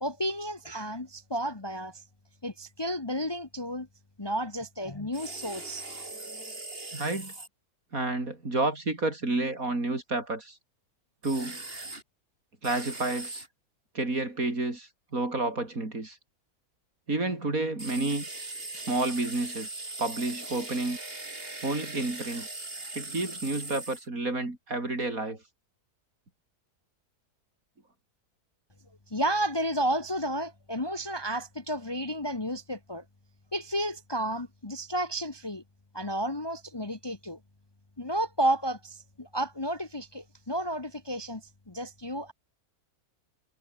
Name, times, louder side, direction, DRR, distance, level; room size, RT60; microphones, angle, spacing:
voice 1, 0.0-2.0 2.4-3.9 4.2-5.9 29.1-33.0 33.5-35.6 35.9-37.4 38.0-42.3, right 1 dB, 20° left, 1.1 m, -32 dB
sound 1, 5.1-7.5 11.2-12.0 12.6-13.5 17.8-24.1, right 2 dB, 35° right, 4.4 m, -40 dB
voice 2, 6.9-7.3 7.9-10.6 11.2-11.6 12.6-13.4 13.9-16.2 17.1-18.3 18.9-21.0 21.6-22.5 23.0-25.4, right 2 dB, 65° right, 5.6 m, -30 dB
omnidirectional pair, 1.6 m